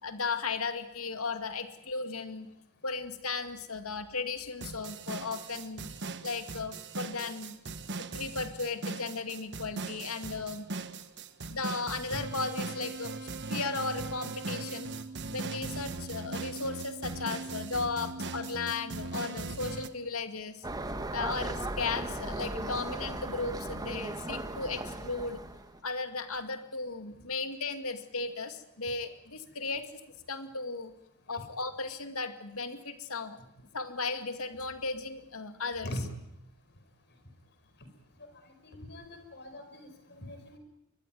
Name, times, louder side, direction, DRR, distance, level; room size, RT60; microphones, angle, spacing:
voice 1, 0.0-2.5 2.8-5.9 6.2-10.7 11.5-14.9 15.3-20.6 21.1-25.4 25.8-29.8 30.3-30.9 31.3-33.4 33.7-35.9, left 4 dB, 70° left, 9 dB, 2.2 m, -36 dB
sound 1, 4.6-19.9, right 3 dB, 50° right, 1.3 m, -39 dB
sound 2, 20.6-25.8, right 1 dB, 15° right, 1.6 m, -37 dB
voice 2, 38.4-40.6, equal, 50° left, 7 dB, 5.3 m, -41 dB
23.5 x 20.5 x 9.4 m, 0.81 s
head